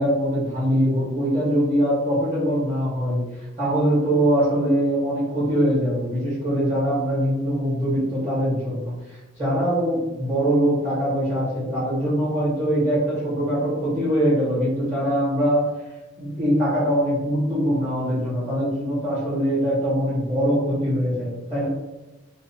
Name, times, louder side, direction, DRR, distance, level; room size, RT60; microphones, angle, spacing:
voice 1, 0.0-15.6 16.2-21.7, equal, 35° right, -8 dB, 1.1 m, -22 dB
2.5 x 2.1 x 2.7 m, 1.1 s
head